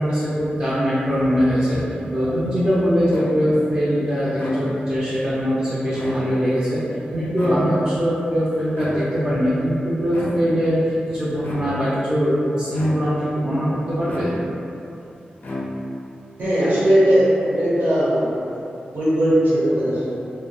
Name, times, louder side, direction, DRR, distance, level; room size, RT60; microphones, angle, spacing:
voice 1, 0.0-1.8 2.1-6.8 7.1-14.3 15.0-15.1, equal, 35° right, -10 dB, 0.6 m, -21 dB
sound 1, 3.1-3.7 4.3-5.0 5.8-6.6 7.4-8.1 8.8-9.4 10.1-10.7 11.4-12.0 12.7-13.3 14.1-14.7 15.4-16.1, left 1 dB, 50° left, 0.4 m, -31 dB
voice 2, 16.4-18.3 18.7-20.1, right 1 dB, 75° right, -11 dB, 1.1 m, -18 dB
2.1 x 2.1 x 3.1 m, 2.7 s
cardioid pair, 55°, 3 cm